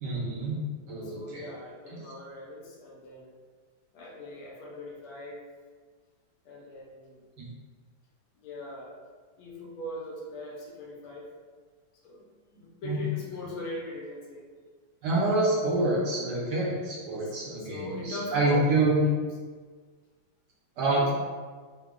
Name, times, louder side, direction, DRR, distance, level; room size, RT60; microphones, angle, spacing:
voice 1, 0.0-0.6 0.9-1.4 1.9-2.0 7.4-7.5 12.8-13.0 15.0-19.0 20.8-21.1, right 2 dB, 70° right, -5 dB, 1.1 m, -27 dB
voice 2, 1.0-3.4 3.9-5.4 6.4-7.2 8.4-9.0 9.4-11.3 12.0-12.2 12.5-14.5 17.2-19.2 20.8-21.1, left 1 dB, 80° left, -2 dB, 1.5 m, -40 dB
3.8 x 2.1 x 3.5 m, 1.5 s
omnidirectional pair, 2.3 m